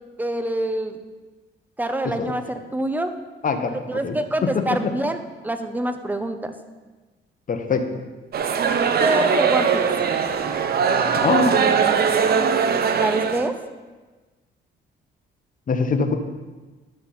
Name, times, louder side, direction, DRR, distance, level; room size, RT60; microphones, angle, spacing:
voice 1, 0.2-1.0 1.8-3.1 3.9-6.5 9.0-9.9 13.0-13.6, right 1 dB, 10° right, 8 dB, 0.8 m, -25 dB
voice 2, 7.5-7.8 11.2-11.8 15.7-16.1, left 4 dB, 45° left, 7 dB, 1.0 m, -22 dB
sound 1, 8.3-13.5, right 6 dB, 50° right, 0.6 m, -20 dB
11.5 x 5.9 x 4.3 m, 1.3 s
cardioid pair, 90°, 20 cm